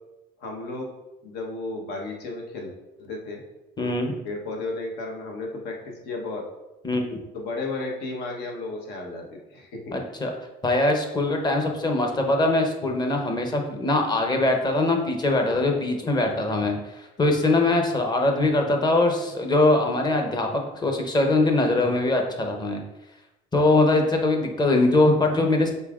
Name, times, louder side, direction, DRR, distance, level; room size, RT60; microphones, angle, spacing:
voice 1, 0.4-0.9 1.2-2.7 3.0-3.4 3.8-4.0 4.2-5.8 6.0-6.5 7.3-9.2 9.5-9.9 25.2-25.3, left 2 dB, 80° left, 1 dB, 1.1 m, -33 dB
voice 2, 3.8-4.1 6.8-7.2 9.9-10.3 10.6-22.8 23.5-25.7, left 2 dB, 25° left, 3 dB, 0.8 m, -22 dB
5.5 x 3.9 x 2.4 m, 0.98 s
cardioid pair, 110°, 17 cm